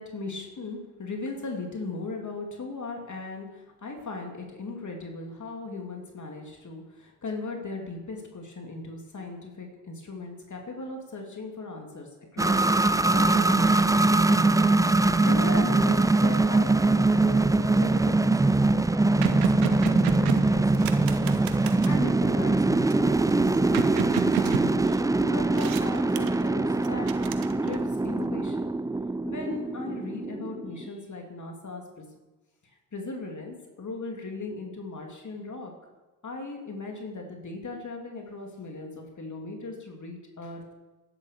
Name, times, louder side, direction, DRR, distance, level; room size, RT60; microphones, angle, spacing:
voice 1, 0.0-14.5 15.2-21.3 21.8-27.1 27.6-28.8 29.2-32.0 32.9-35.7 36.2-40.8, left 3 dB, 40° left, 2 dB, 3.1 m, -38 dB
sound 1, 12.4-30.9, right 2 dB, 10° right, 0.5 m, -23 dB
sound 2, 17.5-17.9 18.3-18.4 18.6-22.0 22.9-25.2 25.5-26.5 26.8-28.0, right 10 dB, 75° right, 1.1 m, -33 dB
11.5 x 10.5 x 6.8 m, 1.1 s
hypercardioid pair, 45°, 45 cm